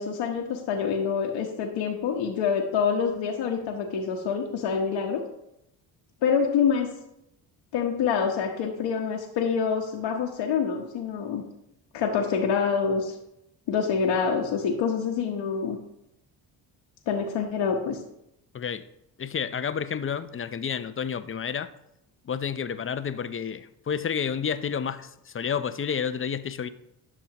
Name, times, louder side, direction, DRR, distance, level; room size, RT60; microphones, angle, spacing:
voice 1, 0.0-5.2 6.2-6.9 7.7-11.4 11.9-13.1 13.7-15.8 17.1-18.0, left 6 dB, 65° left, 0 dB, 1.2 m, -26 dB
voice 2, 19.2-21.7 22.2-26.7, left 7 dB, 25° left, 13 dB, 0.6 m, -30 dB
11.0 x 6.2 x 3.0 m, 0.82 s
hypercardioid pair, 55°, 49 cm